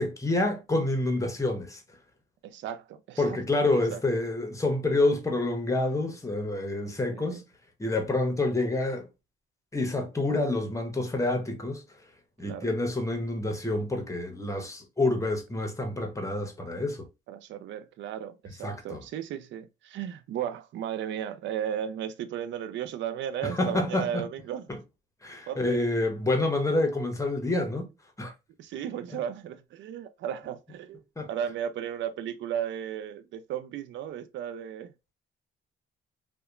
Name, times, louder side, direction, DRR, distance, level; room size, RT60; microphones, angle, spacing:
voice 1, 0.0-1.8 3.2-7.4 7.8-9.1 9.7-11.8 12.4-17.1 18.6-19.0 23.4-24.3 24.7-24.8 25.2-27.9 28.2-28.3 29.1-29.2 31.2-31.3, left 2 dB, 15° left, 0.9 m, -28 dB
voice 2, 2.4-3.4 3.9-4.0 7.1-7.3 12.4-12.7 17.3-24.7 25.5-25.8 28.6-31.0 31.3-34.9, right 9 dB, 70° right, 0.4 m, -35 dB
2.8 x 2.2 x 2.3 m
cardioid pair, 90°, 20 cm